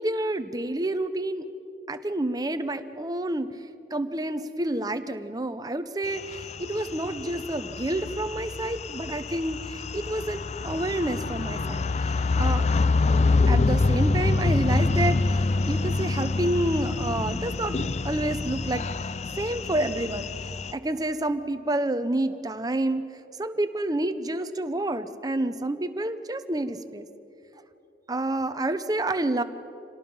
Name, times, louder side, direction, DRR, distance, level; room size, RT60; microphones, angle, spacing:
voice 1, 0.0-1.4 1.9-3.5 3.9-12.7 13.5-20.3 20.7-23.0 23.4-27.1 28.1-29.4, right 1 dB, 20° right, 10 dB, 0.8 m, -29 dB
sound 1, 6.1-20.7, left 3 dB, 40° left, 0.4 m, -26 dB
26.5 x 18.0 x 5.5 m, 2.8 s
head